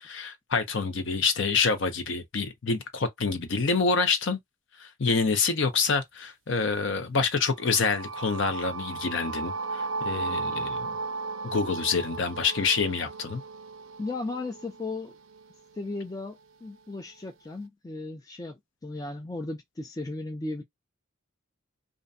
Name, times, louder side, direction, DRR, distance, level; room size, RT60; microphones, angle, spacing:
voice 1, 0.0-4.4 4.8-11.0 11.5-13.4, left 4 dB, 60° left, 0.6 m, -27 dB
sound 1, 7.5-15.5, right 4 dB, 70° right, 0.4 m, -35 dB
voice 2, 14.0-15.1 15.8-20.6, left 2 dB, 15° left, 0.3 m, -36 dB
2.5 x 2.1 x 2.5 m
head